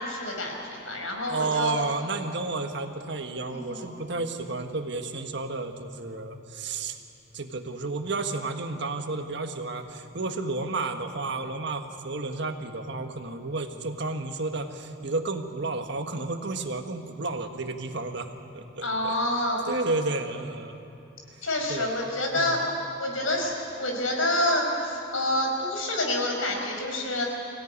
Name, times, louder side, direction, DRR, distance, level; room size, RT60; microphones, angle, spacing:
voice 1, 0.0-1.7 3.5-3.9 18.8-19.6 21.4-22.6 23.0-27.2, left 1 dB, 90° left, 1 dB, 5.0 m, -28 dB
voice 2, 1.3-7.0 7.3-18.3 18.5-19.1 19.7-20.8 21.3-21.9 22.3-22.7, right 3 dB, 60° right, 6 dB, 1.5 m, -32 dB
24.5 x 17.0 x 9.7 m, 2.8 s
head